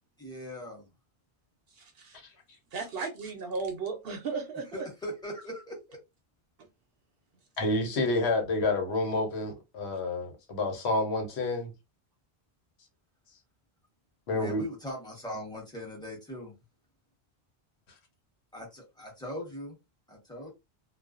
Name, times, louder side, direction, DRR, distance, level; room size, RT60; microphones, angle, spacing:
voice 1, 0.2-0.9 4.7-6.0 14.3-16.5 18.5-19.8 20.1-20.5, left 1 dB, 5° left, 0.9 m, -40 dB
voice 2, 1.8-2.2 2.7-4.8, right 4 dB, 70° right, 0.8 m, -35 dB
voice 3, 7.6-11.7 14.3-14.6, left 2 dB, 85° left, 1.1 m, -29 dB
2.4 x 2.1 x 2.4 m
omnidirectional pair, 1.1 m